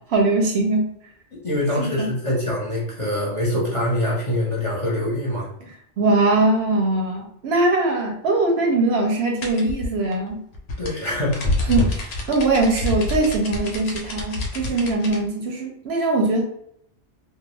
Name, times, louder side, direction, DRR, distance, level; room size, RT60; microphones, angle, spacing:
voice 1, 0.1-0.9 1.8-2.1 6.0-10.4 11.7-16.4, right 2 dB, 70° right, 1 dB, 0.8 m, -21 dB
voice 2, 1.4-5.5 10.8-11.5, left 1 dB, 35° left, -5 dB, 0.7 m, -24 dB
sound 1, 9.4-15.2, left 1 dB, 90° left, 0.9 m, -27 dB
2.3 x 2.2 x 3.1 m, 0.73 s
omnidirectional pair, 1.2 m